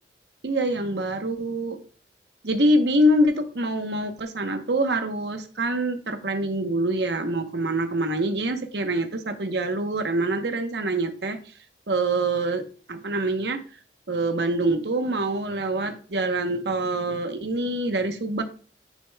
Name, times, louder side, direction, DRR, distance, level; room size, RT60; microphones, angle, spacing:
voice 1, 0.4-1.8 2.4-11.4 11.9-13.6 14.1-18.4, right 1 dB, 70° right, 7 dB, 0.9 m, -25 dB
10.0 x 6.7 x 2.2 m, 0.40 s
head